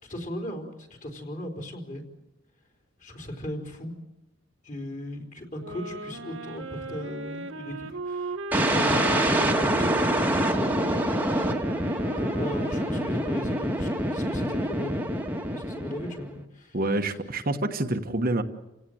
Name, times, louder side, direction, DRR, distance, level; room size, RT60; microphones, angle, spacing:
voice 1, 0.0-2.0 3.0-3.9 4.6-11.5 12.2-16.8 17.1-17.2, left 1 dB, 35° left, 2 dB, 4.0 m, -37 dB
sound 1, 5.6-13.4, right 2 dB, 65° right, 1.5 m, -37 dB
sound 2, 8.5-16.4, right 1 dB, 10° right, 1.5 m, -26 dB
voice 2, 16.7-18.4, right 2 dB, 40° right, 5 dB, 1.2 m, -27 dB
29.5 x 17.0 x 7.8 m, 0.97 s
head